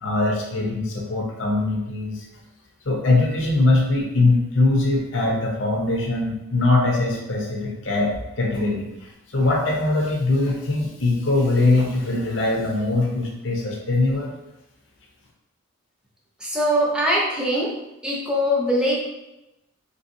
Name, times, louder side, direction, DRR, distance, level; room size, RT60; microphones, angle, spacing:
voice 1, 0.0-2.3 2.9-14.3, left 2 dB, 60° left, -1 dB, 0.6 m, -22 dB
voice 2, 16.4-17.7 18.0-19.0, equal, 5° right, -5 dB, 0.6 m, -22 dB
3.4 x 2.7 x 2.6 m, 0.94 s
head